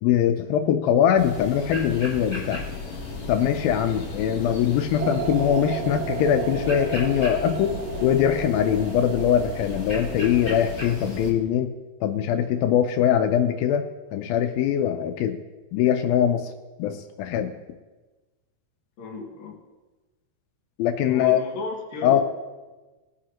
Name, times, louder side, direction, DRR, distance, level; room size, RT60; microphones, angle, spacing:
voice 1, 0.0-2.7 3.3-7.7 8.0-11.7 12.0-13.8 14.1-15.4 15.7-16.5 16.8-17.5 20.8-21.4 22.0-22.2, left 9 dB, 85° left, 7 dB, 2.1 m, -22 dB
sound 1, 1.2-11.3, left 2 dB, 45° left, 5.5 m, -35 dB
sound 2, 5.0-11.0, right 8 dB, 80° right, 2.4 m, -34 dB
voice 2, 19.0-19.5 21.1-22.2, left 4 dB, 65° left, 0 dB, 3.4 m, -33 dB
21.0 x 9.7 x 3.0 m, 1.2 s
omnidirectional pair, 4.9 m